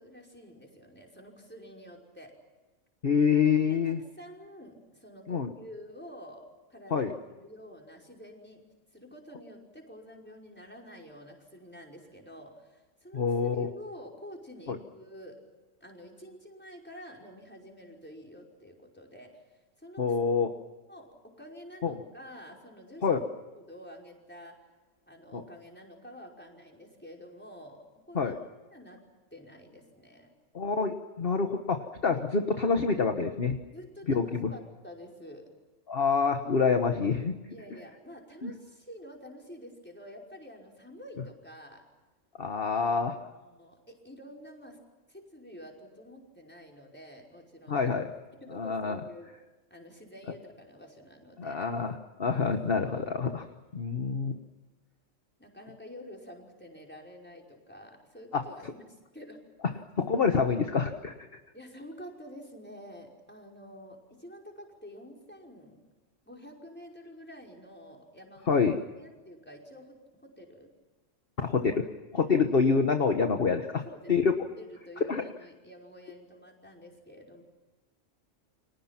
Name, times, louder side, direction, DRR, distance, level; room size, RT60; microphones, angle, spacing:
voice 1, 0.0-2.3 3.6-8.6 8.9-15.4 15.8-19.4 19.8-20.2 20.9-23.2 23.5-24.6 25.1-27.8 28.1-28.5 28.7-29.0 29.3-30.3 32.0-32.2 33.7-35.5 37.5-41.8 42.9-44.8 45.1-48.1 48.4-49.3 49.7-51.7 55.4-59.4 61.5-65.8 66.3-70.7 72.2-72.4 73.6-77.4, equal, 10° left, 0 dB, 5.4 m, -49 dB
voice 2, 3.0-4.0 5.3-5.5 6.9-7.1 13.1-13.7 14.7-14.8 20.0-20.5 21.8-22.0 23.0-23.2 25.3-25.4 28.1-28.4 30.5-33.6 34.1-34.5 35.9-37.5 38.4-38.5 42.4-43.2 47.7-48.1 48.6-49.0 51.4-53.5 53.7-54.4 58.3-58.4 60.0-61.1 68.5-68.8 71.4-71.9 72.1-73.8 74.1-74.3 75.1-75.2, left 5 dB, 45° left, 5 dB, 1.5 m, -26 dB
30.0 x 25.5 x 6.0 m, 1.2 s
omnidirectional pair, 1.3 m